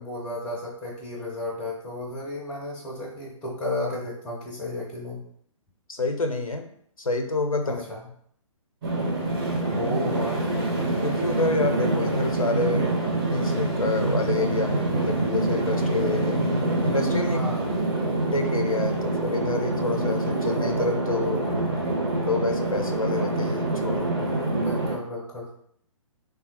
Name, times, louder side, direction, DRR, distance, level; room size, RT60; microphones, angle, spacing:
voice 1, 0.0-5.2 7.6-8.0 9.7-10.4 17.2-17.7 24.5-25.5, left 1 dB, 5° left, -3 dB, 0.4 m, -33 dB
voice 2, 5.9-6.7 7.0-7.8 11.0-16.5 16.8-17.4 18.3-21.4 22.2-24.1, left 3 dB, 90° left, 6 dB, 0.5 m, -28 dB
sound 1, 8.8-25.0, right 2 dB, 45° right, 1.1 m, -25 dB
3.2 x 2.1 x 2.9 m, 0.67 s
figure-of-eight pair, 130°, 17 cm